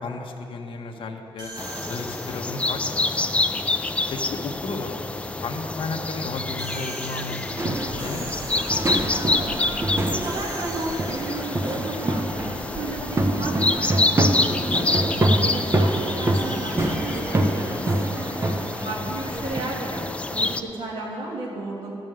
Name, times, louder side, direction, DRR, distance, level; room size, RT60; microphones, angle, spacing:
voice 1, 0.0-1.5 1.9-3.2 4.1-8.3 8.8-9.2 18.8-19.1, left 3 dB, 60° left, 2 dB, 1.0 m, -34 dB
sound 1, 1.4-2.6 6.6-9.1 10.2-11.5 16.3-18.9, right 2 dB, 50° right, 2.9 m, -42 dB
sound 2, 1.6-20.6, left 2 dB, 15° left, 0.3 m, -28 dB
sound 3, 7.6-19.6, right 1 dB, 25° right, 0.8 m, -26 dB
voice 2, 10.1-15.0 15.3-18.2 18.8-21.9, right 2 dB, 75° right, -3 dB, 1.5 m, -33 dB
14.0 x 5.3 x 7.7 m, 3.0 s
wide cardioid pair, 170°, 10 cm